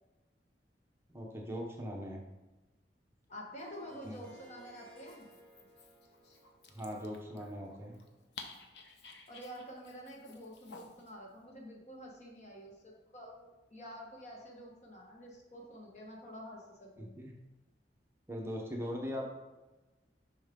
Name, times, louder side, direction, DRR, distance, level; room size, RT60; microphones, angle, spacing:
voice 1, 1.1-2.2 4.0-4.2 6.7-7.9 17.0-17.3 18.3-19.3, equal, 15° right, -1 dB, 0.8 m, -40 dB
voice 2, 3.3-5.3 9.3-17.1, equal, 40° left, -1 dB, 1.4 m, -48 dB
Harp, 3.6-8.5, right 2 dB, 5° left, 1.1 m, -60 dB
Dog, 4.9-11.1, left 4 dB, 70° left, 0.8 m, -54 dB
7.2 x 5.4 x 3.7 m, 1.1 s
head